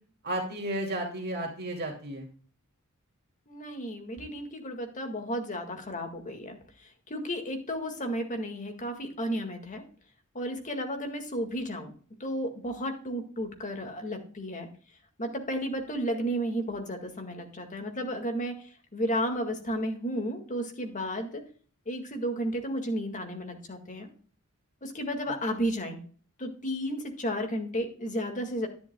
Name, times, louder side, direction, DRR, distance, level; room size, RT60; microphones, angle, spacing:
voice 1, 0.2-2.3, right 1 dB, 50° right, 1 dB, 2.5 m, -33 dB
voice 2, 3.5-6.6 7.1-9.8 10.3-11.9 12.2-14.7 15.2-18.6 18.9-21.4 21.9-24.1 24.8-26.0 26.4-28.7, equal, 35° left, 4 dB, 1.9 m, -33 dB
10.5 x 10.5 x 2.2 m, 0.43 s
head